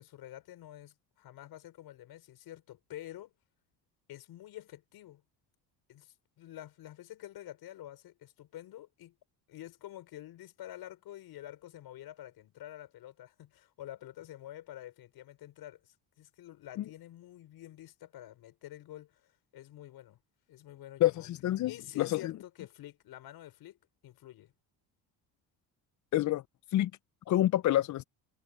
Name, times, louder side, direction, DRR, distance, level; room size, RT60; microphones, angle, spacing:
voice 1, 0.0-3.3 4.1-5.2 5.9-9.1 9.5-19.2 19.5-20.2 20.5-21.3 21.6-23.8 24.0-24.5, left 13 dB, 70° left, 5.5 m, -48 dB
voice 2, 21.0-22.3 26.1-26.4 26.7-26.9 27.3-28.0, left 14 dB, 50° left, 0.5 m, -27 dB
cardioid pair, 105°, 39 cm